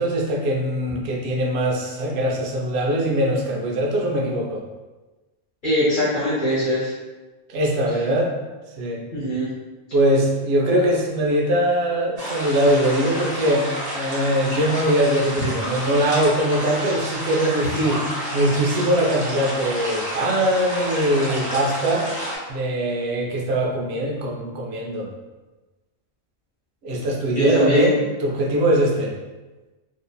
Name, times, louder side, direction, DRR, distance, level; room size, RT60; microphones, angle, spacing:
voice 1, 0.0-4.6 7.5-8.3 8.8-9.0 9.9-13.7 13.9-18.0 18.3-22.1 22.5-25.1 26.8-29.1, right 1 dB, 75° right, -1 dB, 0.8 m, -21 dB
voice 2, 5.6-6.9 9.1-9.5 27.3-27.9, equal, 50° left, -9 dB, 1.0 m, -21 dB
sound 1, 12.2-22.4, equal, 35° right, 1.1 m, -30 dB
2.7 x 2.6 x 2.3 m, 1.2 s
omnidirectional pair, 1.1 m